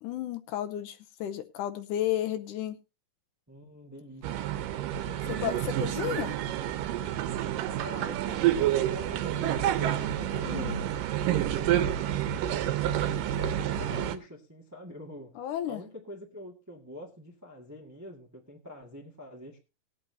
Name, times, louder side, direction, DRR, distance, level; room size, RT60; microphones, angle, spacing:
voice 1, 0.0-2.8 5.3-6.4 10.5-10.8 15.4-15.8, left 12 dB, 75° left, 9 dB, 2.1 m, -33 dB
voice 2, 3.5-4.4 7.8-10.9 11.3-15.4 15.6-19.6, equal, 10° right, 1 dB, 0.7 m, -45 dB
sound 1, 4.2-14.2, right 11 dB, 80° right, 2.5 m, -29 dB
19.5 x 8.6 x 2.8 m, 0.26 s
omnidirectional pair, 3.9 m